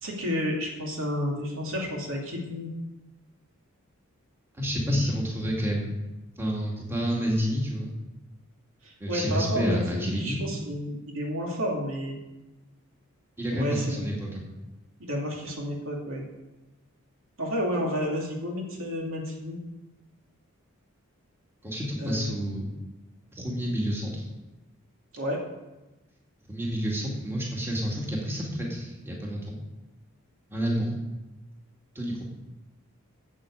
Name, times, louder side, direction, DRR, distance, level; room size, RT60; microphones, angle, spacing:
voice 1, 0.0-2.7 8.8-12.1 13.5-14.1 15.0-16.2 17.4-19.6 22.0-22.3 25.1-25.4, equal, 65° right, -1 dB, 2.7 m, -31 dB
voice 2, 4.5-5.9 6.4-7.9 9.0-10.4 13.4-14.5 21.6-22.7 23.3-24.3 26.5-29.6 30.5-30.9 31.9-32.2, equal, 10° right, -3 dB, 2.2 m, -29 dB
8.5 x 7.9 x 8.6 m, 1.0 s
head